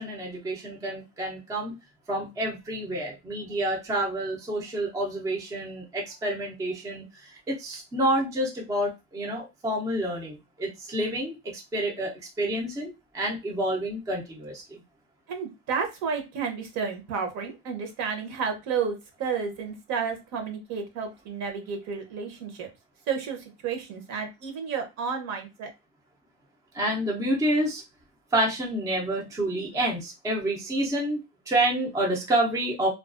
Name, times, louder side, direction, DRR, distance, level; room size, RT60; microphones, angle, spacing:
voice 1, 0.0-1.8 2.1-14.6 26.7-27.8 28.3-31.2 31.5-32.9, right 1 dB, 10° right, -1 dB, 0.5 m, -28 dB
voice 2, 15.3-22.7 23.1-25.7, right 6 dB, 55° right, 5 dB, 0.8 m, -31 dB
2.3 x 2.3 x 2.4 m, 0.24 s
cardioid pair, 140°, 33 cm